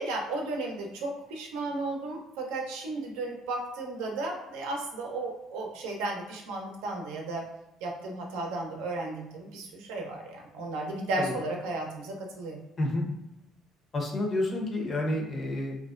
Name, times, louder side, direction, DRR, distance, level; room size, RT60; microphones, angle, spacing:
voice 1, 0.0-7.4 7.8-12.6, right 2 dB, 90° right, 0 dB, 0.5 m, -34 dB
voice 2, 12.8-13.1 13.9-15.8, left 1 dB, 40° left, 0 dB, 0.7 m, -29 dB
2.5 x 2.1 x 2.4 m, 0.91 s
supercardioid pair, 85°, 0 cm